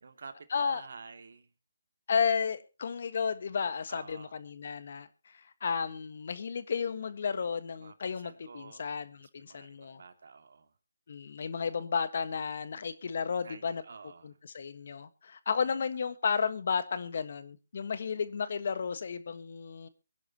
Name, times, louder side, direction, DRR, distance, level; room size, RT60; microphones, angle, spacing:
voice 1, 0.0-1.5 3.9-4.4 7.8-8.9 9.2-10.7 13.4-14.4, right 4 dB, 60° right, 2.3 m, -50 dB
voice 2, 2.1-5.1 5.3-10.0 11.1-13.8 14.2-19.9, left 6 dB, 55° left, 1.5 m, -33 dB
23.5 x 11.0 x 2.9 m
figure-of-eight pair, 155°, 0 cm